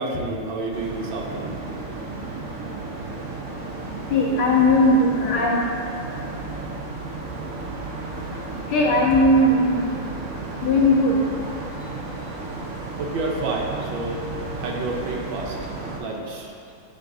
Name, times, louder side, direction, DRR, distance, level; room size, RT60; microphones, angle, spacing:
voice 1, 0.0-1.6 11.8-11.9 13.0-14.3 14.5-15.6 16.0-16.7, right 2 dB, 70° right, -1 dB, 1.5 m, -29 dB
sound 1, 0.7-16.0, right 3 dB, 55° right, 0.9 m, -33 dB
voice 2, 4.1-5.6 8.7-10.0 10.6-11.2, left 1 dB, 85° left, -3 dB, 1.9 m, -18 dB
10.0 x 4.4 x 2.7 m, 2.4 s
omnidirectional pair, 2.3 m